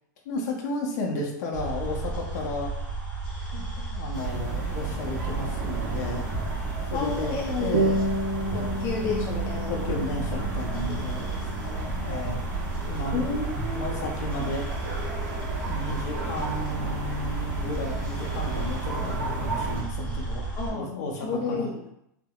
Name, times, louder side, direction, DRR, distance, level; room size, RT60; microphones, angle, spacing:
voice 1, 0.2-2.7 3.5-6.3 6.9-7.3 7.6-8.0 8.5-8.8 9.7-11.2 12.0-12.4 12.9-13.2 13.7-14.7 15.7-21.7, left 2 dB, 65° left, 0 dB, 0.7 m, -33 dB
sound 1, 1.5-20.7, right 3 dB, 10° left, 0.8 m, -33 dB
sound 2, 4.1-19.8, right 3 dB, 65° right, 0.9 m, -34 dB
voice 2, 6.9-7.7 8.5-10.0 10.9-12.0 13.1-14.1 20.6-21.8, left 4 dB, 30° left, -2 dB, 0.4 m, -32 dB
sound 3, 7.7-12.7, right 1 dB, 80° right, 0.5 m, -31 dB
3.4 x 2.1 x 2.3 m, 0.77 s
supercardioid pair, 155°, 10 cm